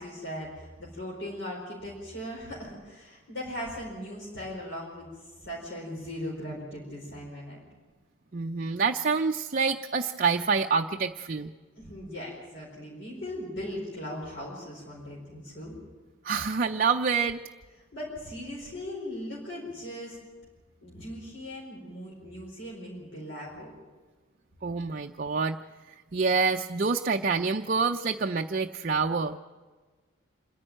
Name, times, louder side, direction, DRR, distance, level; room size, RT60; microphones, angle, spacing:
voice 1, 0.0-5.1 5.4-7.6 11.8-15.8 17.9-20.2 20.8-23.7, left 1 dB, 60° left, -4 dB, 4.7 m, -39 dB
voice 2, 8.3-11.5 16.2-17.4 24.6-25.6 26.1-29.4, right 5 dB, 40° right, 4 dB, 0.5 m, -27 dB
27.0 x 11.0 x 9.0 m, 1.4 s
head